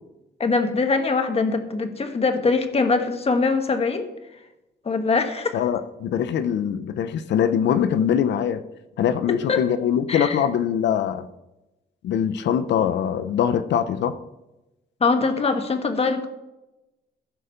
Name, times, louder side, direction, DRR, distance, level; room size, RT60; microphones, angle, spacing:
voice 1, 0.4-4.1 4.8-5.5 9.5-9.6 10.1-10.4 15.0-16.3, left 4 dB, 35° left, 7 dB, 1.4 m, -22 dB
voice 2, 5.5-8.6 9.0-11.3 12.0-14.1, left 8 dB, 85° left, 12 dB, 0.8 m, -22 dB
15.5 x 5.1 x 6.9 m, 0.98 s
cardioid pair, 100°, 18 cm